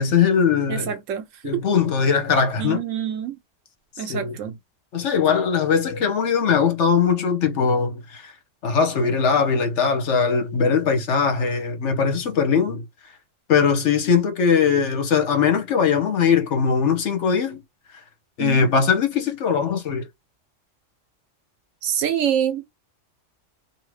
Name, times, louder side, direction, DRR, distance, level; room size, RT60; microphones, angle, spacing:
voice 1, 0.0-0.9 1.4-2.8 4.1-4.4 4.9-8.3 8.6-12.8 13.5-17.6 18.4-20.1, left 6 dB, 70° left, 1.2 m, -20 dB
voice 2, 0.7-1.3 1.5-1.6 2.6-3.4 4.0-4.6 18.4-18.7 21.8-22.7, right 9 dB, 85° right, 1.1 m, -26 dB
2.8 x 2.6 x 3.1 m
omnidirectional pair, 1.3 m